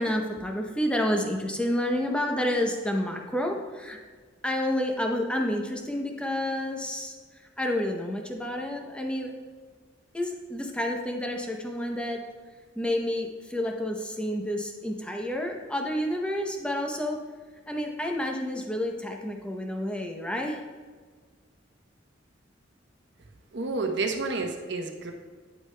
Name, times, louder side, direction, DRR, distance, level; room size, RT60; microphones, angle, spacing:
voice 1, 0.0-4.0 4.4-7.1 7.6-9.3 10.1-12.2 12.8-17.2 17.7-20.6, left 1 dB, 5° left, 2 dB, 0.7 m, -29 dB
voice 2, 23.5-25.1, right 3 dB, 60° right, 3 dB, 0.8 m, -30 dB
9.3 x 7.8 x 2.2 m, 1.5 s
head